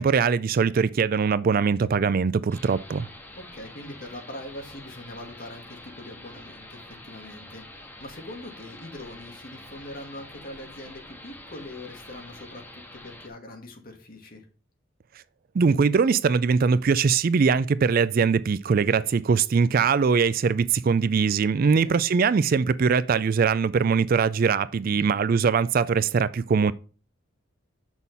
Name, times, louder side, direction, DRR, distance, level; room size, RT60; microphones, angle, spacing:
voice 1, 0.0-3.1 15.5-26.7, right 5 dB, 45° right, 0.3 m, -22 dB
sound 1, 2.5-13.3, left 1 dB, 10° left, 1.6 m, -46 dB
voice 2, 3.3-14.4 21.6-21.9 24.8-25.1, left 1 dB, 45° left, 2.1 m, -42 dB
7.2 x 6.2 x 5.4 m
head